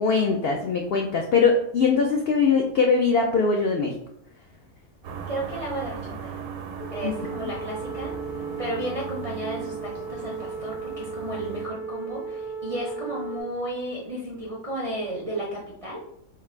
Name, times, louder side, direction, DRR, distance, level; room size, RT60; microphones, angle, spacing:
voice 1, 0.0-3.9 7.0-7.1 7.4-7.5, left 5 dB, 80° left, 2 dB, 0.5 m, -21 dB
sound 1, 5.0-11.7, right 6 dB, 80° right, 1.1 m, -37 dB
voice 2, 5.3-6.4 6.9-16.0, right 1 dB, 45° right, -4 dB, 0.4 m, -33 dB
sound 2, 6.8-13.4, right 5 dB, 55° left, 1.0 m, -35 dB
3.2 x 2.4 x 4.4 m, 0.72 s
omnidirectional pair, 1.6 m